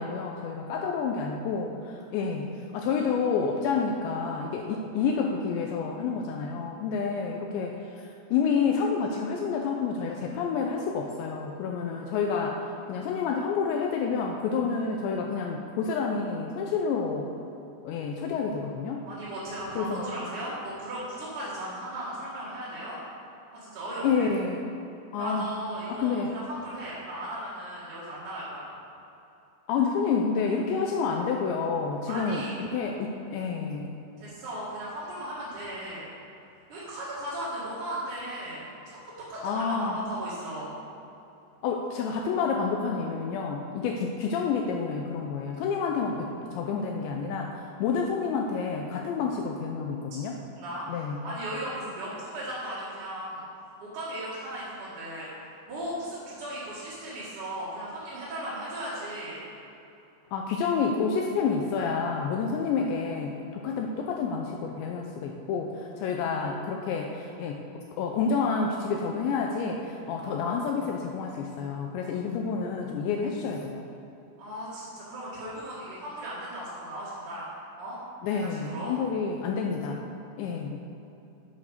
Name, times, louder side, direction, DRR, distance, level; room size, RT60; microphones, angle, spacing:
voice 1, 0.0-2.5 2.7-17.3 17.8-19.0 19.8-20.1 24.0-24.7 25.1-25.5 25.9-26.3 29.7-33.9 39.4-40.0 41.6-50.4 50.9-51.2 60.3-67.6 68.0-73.8 78.2-80.0 80.4-80.8, left 5 dB, 85° left, 2 dB, 2.6 m, -29 dB
voice 2, 19.1-23.0 23.6-24.3 25.2-28.7 32.1-32.6 34.2-36.1 36.7-39.0 39.3-40.7 50.5-53.5 53.8-55.3 55.7-59.4 74.4-77.5 77.8-78.0 78.3-78.9, right 1 dB, 50° right, -10 dB, 2.7 m, -36 dB
9.2 x 8.5 x 6.6 m, 2.8 s
omnidirectional pair, 5.9 m